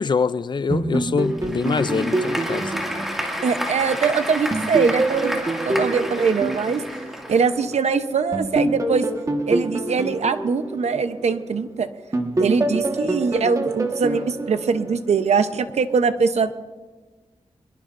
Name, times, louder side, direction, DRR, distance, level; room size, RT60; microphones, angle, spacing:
voice 1, 0.0-2.7, left 5 dB, 45° left, 0.4 m, -24 dB
sound 1, 0.7-4.0 4.5-7.8 8.3-11.6 12.1-15.4, right 2 dB, 30° right, 1.5 m, -26 dB
Applause / Crowd, 1.2-7.8, equal, 5° right, 2.3 m, -31 dB
voice 2, 3.4-6.8 7.3-9.1 9.5-11.9 12.4-16.5, right 5 dB, 75° right, 0.9 m, -22 dB
24.5 x 21.5 x 2.6 m
wide cardioid pair, 155°, 11 cm